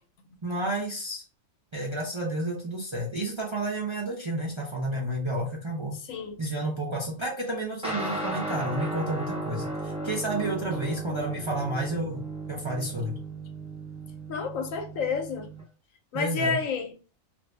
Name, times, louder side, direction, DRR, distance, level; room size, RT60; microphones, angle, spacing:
voice 1, 0.4-1.2 1.7-6.0 6.4-12.2 12.5-13.2 16.1-16.6, right 1 dB, 35° right, 0.5 m, -31 dB
voice 2, 6.1-6.4 14.3-15.5 16.1-16.9, left 5 dB, 80° left, 1.1 m, -30 dB
sound 1, 7.8-15.6, right 2 dB, 5° right, 1.0 m, -35 dB
2.6 x 2.6 x 3.2 m
omnidirectional pair, 1.4 m